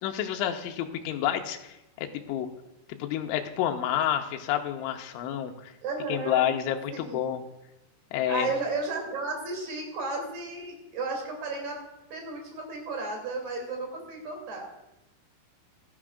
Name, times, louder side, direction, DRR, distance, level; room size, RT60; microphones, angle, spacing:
voice 1, 0.0-1.6 2.0-2.5 3.0-5.7 6.1-7.4 8.1-8.5, left 10 dB, 80° left, 4 dB, 3.1 m, -29 dB
voice 2, 5.8-6.4 6.9-7.2 8.3-11.8 12.1-14.7, right 3 dB, 40° right, 0 dB, 3.4 m, -33 dB
16.0 x 12.0 x 2.4 m, 0.95 s
omnidirectional pair, 5.7 m